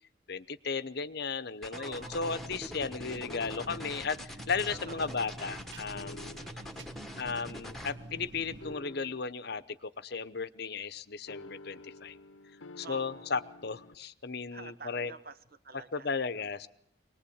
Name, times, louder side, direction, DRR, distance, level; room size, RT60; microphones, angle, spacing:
voice 1, 0.3-6.4 7.2-12.2 12.8-15.1 15.7-16.7, left 5 dB, 55° left, 15 dB, 0.9 m, -35 dB
sound 1, 1.6-7.9, left 1 dB, ahead, 1.5 m, -44 dB
voice 2, 1.7-2.3 4.7-5.2 6.3-6.9 12.8-13.3 14.5-16.5, right 3 dB, 50° right, 12 dB, 1.3 m, -49 dB
sound 2, 1.9-8.7, right 1 dB, 65° right, 1.4 m, -47 dB
sound 3, 3.3-4.1 5.9-6.7 8.6-9.4 11.3-14.0, left 2 dB, 80° left, 0.9 m, -49 dB
24.5 x 19.5 x 8.7 m, 0.70 s
head